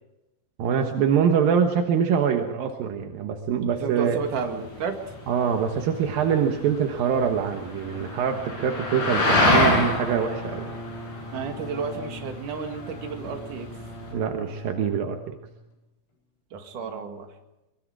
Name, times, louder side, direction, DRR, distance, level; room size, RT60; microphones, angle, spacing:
voice 1, 0.6-4.2 5.3-10.7 14.1-15.4, right 7 dB, 70° right, 4 dB, 2.2 m, -24 dB
voice 2, 3.7-5.0 11.3-13.7 16.5-17.3, right 5 dB, 50° right, 4 dB, 2.8 m, -32 dB
sound 1, 4.2-14.1, left 1 dB, 35° left, 8.6 m, -27 dB
Bowed string instrument, 7.3-15.7, equal, 70° left, 6.9 m, -41 dB
24.0 x 23.0 x 4.9 m, 0.94 s
omnidirectional pair, 5.9 m